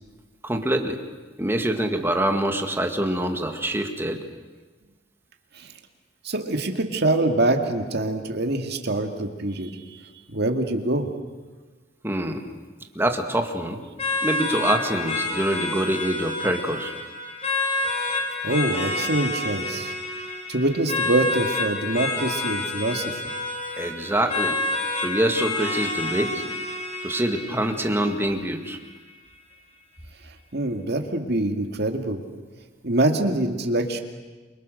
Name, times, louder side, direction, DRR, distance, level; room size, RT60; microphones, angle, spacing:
voice 1, 0.4-1.0 1.4-4.2 12.0-12.5 13.0-13.8 14.2-16.9 23.8-24.6 25.0-26.4 27.0-28.8, right 1 dB, 10° right, 5 dB, 1.9 m, -25 dB
voice 2, 6.2-10.0 10.3-11.1 18.4-19.9 20.5-23.2 30.5-32.2 32.8-34.0, right 2 dB, 60° right, 5 dB, 2.1 m, -24 dB
sound 1, 14.0-29.0, left 3 dB, 35° left, 4.4 m, -29 dB
28.5 x 24.0 x 6.7 m, 1.3 s
head